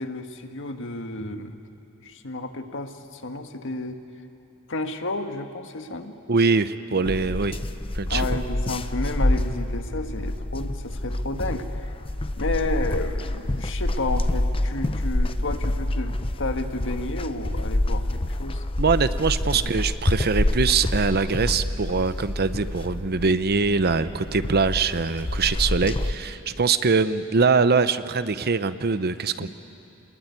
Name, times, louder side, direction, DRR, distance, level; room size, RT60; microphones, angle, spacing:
voice 1, 0.0-1.6 2.0-4.0 4.7-6.1 8.1-12.0 12.4-18.6 19.5-19.7, left 2 dB, 65° left, 6 dB, 1.6 m, -31 dB
voice 2, 6.3-7.6 7.9-8.4 18.8-29.5, right 4 dB, 50° right, 13 dB, 0.8 m, -23 dB
sound 1, 7.1-26.1, left 1 dB, 25° left, 0.7 m, -27 dB
28.0 x 21.0 x 9.7 m, 2.7 s
head